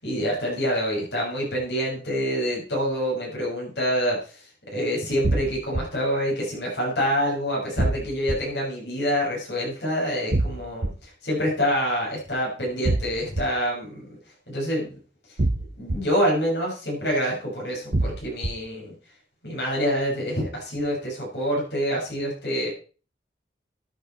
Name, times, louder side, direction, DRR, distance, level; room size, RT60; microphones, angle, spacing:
voice 1, 0.0-14.1 14.5-14.9 15.8-18.9 19.4-22.7, equal, 70° left, -4 dB, 7.0 m, -26 dB
sound 1, 5.2-5.8 7.8-8.4 10.3-10.9 12.8-13.4 15.4-16.0 17.9-18.5, right 2 dB, 55° right, 0.9 m, -23 dB
13.5 x 8.4 x 4.4 m, 0.37 s
head